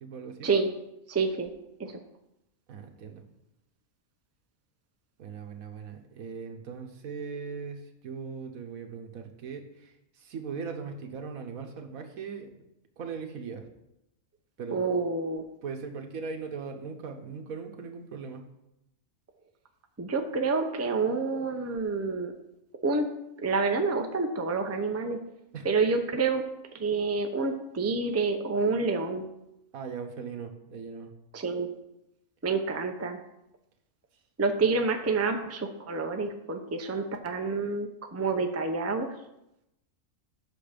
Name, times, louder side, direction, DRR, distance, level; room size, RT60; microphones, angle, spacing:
voice 1, 0.0-0.5 2.7-3.2 5.2-12.5 13.0-13.6 14.6-14.8 15.6-18.4 25.5-25.7 29.7-31.1, right 5 dB, 90° right, 5 dB, 1.5 m, -39 dB
voice 2, 1.1-1.5 1.8-1.9 14.7-15.4 20.0-22.3 22.8-23.1 23.4-25.2 25.6-26.4 26.8-29.3 31.3-31.7 32.4-33.2 34.4-39.1, right 4 dB, 15° right, 5 dB, 0.5 m, -28 dB
8.5 x 6.0 x 5.1 m, 0.85 s
omnidirectional pair, 1.4 m